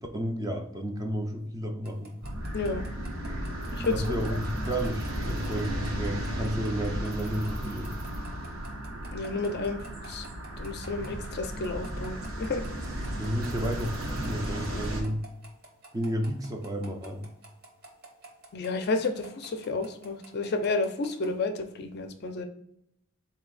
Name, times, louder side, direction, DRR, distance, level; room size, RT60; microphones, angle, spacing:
voice 1, 0.1-2.1 3.8-7.9 13.1-15.2 15.9-17.2, equal, 15° right, 3 dB, 0.4 m, -32 dB
sound 1, 1.8-21.3, right 2 dB, 50° right, 1.0 m, -50 dB
sound 2, 2.2-15.0, right 1 dB, 75° right, 0.9 m, -35 dB
voice 2, 2.5-2.9 3.7-4.0 9.1-10.3 10.6-12.6 18.5-22.5, left 3 dB, 50° left, 6 dB, 0.4 m, -31 dB
4.0 x 2.7 x 3.8 m, 0.75 s
head